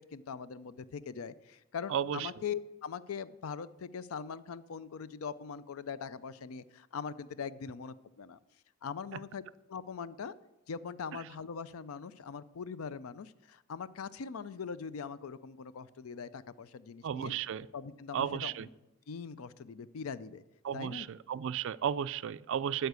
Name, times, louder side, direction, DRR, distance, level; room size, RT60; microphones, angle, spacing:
voice 1, 0.1-8.4 8.8-9.4 9.7-10.3 10.7-17.3 17.7-18.7 19.1-20.4 20.7-21.1, left 6 dB, 80° left, 16 dB, 0.5 m, -41 dB
voice 2, 17.0-17.7 18.1-18.7 20.6-22.9, right 8 dB, 60° right, 14 dB, 0.3 m, -34 dB
13.0 x 4.5 x 8.1 m, 0.96 s
head